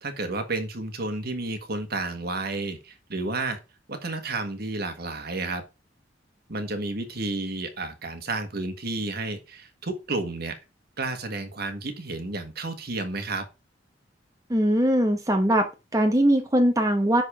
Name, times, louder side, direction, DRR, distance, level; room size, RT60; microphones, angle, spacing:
voice 1, 0.0-3.6 3.9-5.6 6.5-10.6 11.0-13.5, right 2 dB, 55° right, 1.6 m, -31 dB
voice 2, 14.5-17.2, right 1 dB, 20° right, 1.1 m, -21 dB
10.0 x 4.1 x 4.9 m
head